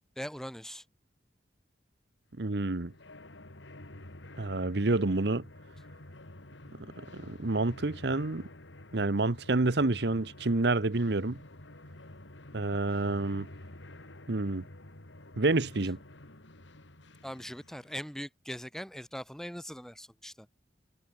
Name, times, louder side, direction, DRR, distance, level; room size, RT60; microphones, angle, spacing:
voice 1, 0.2-0.8 17.2-20.5, equal, 5° left, 2.8 m, -41 dB
sound 1, 2.4-18.2, left 1 dB, 90° left, 3.0 m, -50 dB
voice 2, 2.4-2.9 4.4-5.4 7.1-8.5 8.9-11.4 12.5-13.5 14.3-14.6 15.4-16.0, right 2 dB, 65° right, 1.0 m, -28 dB
head